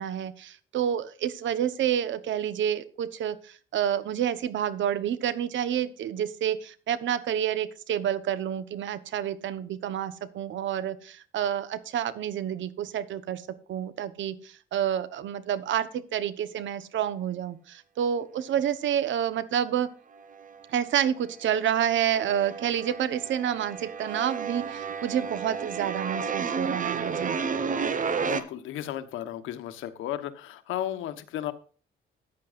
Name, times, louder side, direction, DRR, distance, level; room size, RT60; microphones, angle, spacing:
voice 1, 0.0-13.4 13.7-19.9 20.7-27.4, right 9 dB, 70° right, 1.1 m, -29 dB
sound 1, 20.2-21.0 21.2-28.4, right 5 dB, 40° right, 1.2 m, -32 dB
voice 2, 28.2-31.5, left 11 dB, 90° left, 1.1 m, -34 dB
14.5 x 9.8 x 2.5 m
cardioid pair, 90°, 20 cm